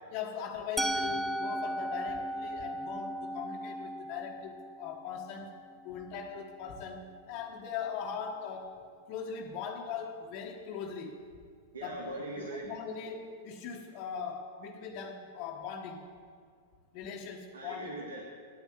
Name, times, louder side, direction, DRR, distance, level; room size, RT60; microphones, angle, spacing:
voice 1, 0.1-5.5 5.8-8.8 9.1-11.3 11.8-12.2 12.6-16.0 16.9-17.9, left 6 dB, 50° left, 0 dB, 1.3 m, -40 dB
Musical instrument, 0.8-6.7, right 1 dB, 5° right, 0.7 m, -37 dB
voice 2, 11.7-12.6 17.5-18.2, right 2 dB, 90° right, 0 dB, 1.7 m, -40 dB
10.0 x 9.2 x 8.7 m, 2.1 s
hypercardioid pair, 110°, 0 cm